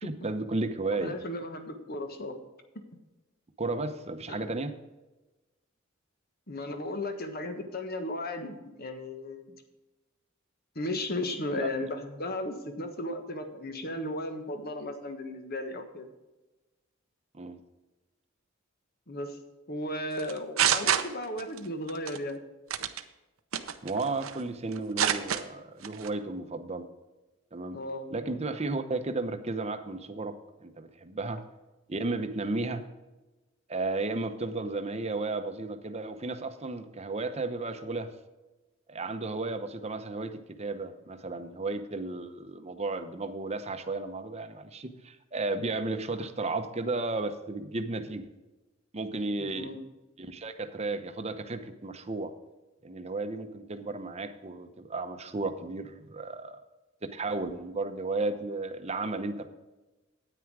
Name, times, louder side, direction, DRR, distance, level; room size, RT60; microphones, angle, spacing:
voice 1, 0.0-1.2 3.6-4.7 11.5-11.7 17.3-17.6 23.8-26.9 27.5-27.8 28.1-31.4 31.9-32.8 33.7-38.1 38.9-48.2 48.9-49.7 50.2-52.3 52.8-56.6 57.1-59.5, right 3 dB, 30° right, 8 dB, 0.9 m, -33 dB
voice 2, 0.9-2.3 4.3-4.5 6.5-9.5 10.7-16.1 19.1-19.4 19.7-22.4 27.7-28.1 49.4-49.8, left 1 dB, 45° left, 6 dB, 1.4 m, -35 dB
sound 1, 20.2-21.6 21.9-22.2 22.7-23.0 23.5-24.4 24.7-25.4 25.8-26.1, right 9 dB, 85° right, 0.8 m, -27 dB
9.5 x 9.2 x 4.8 m, 1.1 s
head